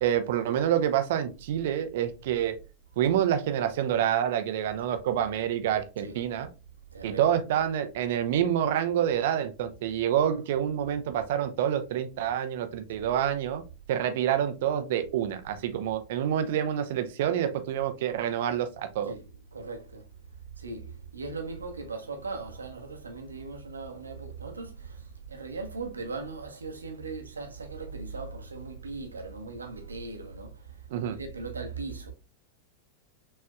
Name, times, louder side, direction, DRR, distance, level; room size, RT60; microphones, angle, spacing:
voice 1, 0.0-2.6 3.0-6.5 7.0-13.6 13.9-19.1 30.9-31.2, right 10 dB, 55° right, 0.7 m, -27 dB
voice 2, 6.9-7.4 13.0-13.1 19.0-20.1 20.6-32.1, right 4 dB, 75° right, 1.0 m, -39 dB
6.3 x 3.3 x 2.3 m
figure-of-eight pair, 90°, 0 cm